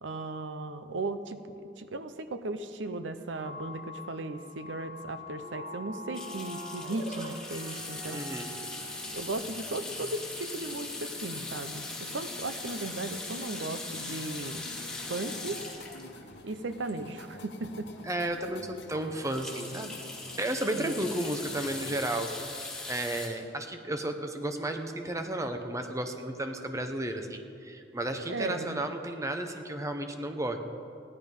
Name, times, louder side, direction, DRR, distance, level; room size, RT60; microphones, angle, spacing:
voice 1, 0.0-1.4 1.8-8.2 9.1-14.6 15.0-15.6 16.4-17.9 20.7-20.9 28.3-28.8, right 2 dB, 85° right, 11 dB, 0.7 m, -36 dB
sound 1, 3.3-9.3, left 1 dB, 55° right, 2.5 m, -43 dB
sound 2, 6.1-17.4 17.9-18.0 18.3-18.4 18.8-23.3, left 3 dB, 5° left, 2.6 m, -40 dB
sound 3, 7.8-22.0, left 2 dB, 65° left, 1.1 m, -48 dB
voice 2, 8.1-8.5 18.0-20.0 20.4-22.6 22.9-30.6, right 1 dB, 15° right, 6 dB, 0.9 m, -33 dB
15.5 x 11.0 x 5.4 m, 2.5 s
head